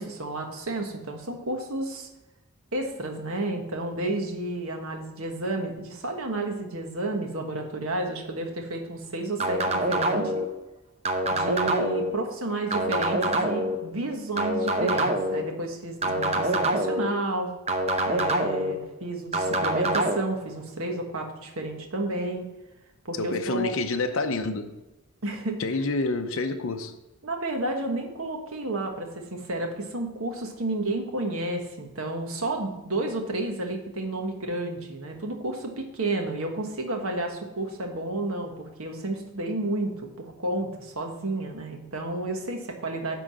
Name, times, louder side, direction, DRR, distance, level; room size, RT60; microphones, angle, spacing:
voice 1, 0.0-2.1 2.7-10.4 11.3-17.5 18.0-22.5 23.0-23.7 25.2-25.6 27.2-43.2, right 2 dB, 70° right, 1.4 m, -31 dB
sound 1, 9.4-10.4 11.0-12.1 12.7-13.7 14.4-15.4 16.0-17.1 17.7-18.7 19.3-20.2, right 1 dB, 30° right, 0.8 m, -25 dB
voice 2, 23.2-24.8 25.6-26.9, left 3 dB, 65° left, 0.7 m, -28 dB
10.5 x 3.8 x 7.5 m
head